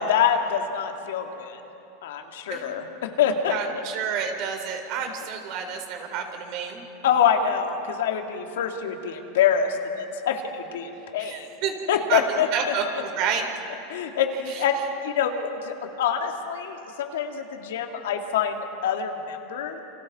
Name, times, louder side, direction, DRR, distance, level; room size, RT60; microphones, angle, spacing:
voice 1, 0.0-1.6 2.0-3.6 7.0-11.5 11.9-12.7 13.9-19.8, left 7 dB, 85° left, 4 dB, 2.1 m, -25 dB
voice 2, 3.5-6.9 11.2-11.7 12.1-13.5 14.5-14.6 15.3-15.5, right 6 dB, 55° right, 4 dB, 3.7 m, -29 dB
29.0 x 26.5 x 4.2 m, 3.0 s
supercardioid pair, 130°, 0 cm